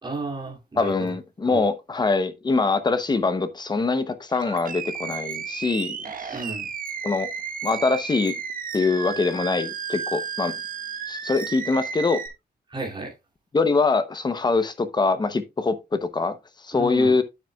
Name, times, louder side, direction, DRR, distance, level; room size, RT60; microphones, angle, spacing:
voice 1, 0.0-1.1 1.5-1.7 6.3-6.7 12.7-13.1 16.7-17.2, right 3 dB, 25° right, 2.7 m, -33 dB
voice 2, 0.8-6.0 6.2-6.3 7.0-7.3 7.6-8.3 8.7-10.5 11.1-12.2 13.5-16.4 16.6-17.2, left 3 dB, 25° left, 0.8 m, -23 dB
Animal, 4.3-12.3, right 6 dB, 55° right, 1.2 m, -33 dB
9.0 x 8.9 x 2.3 m
wide cardioid pair, 175°, 17 cm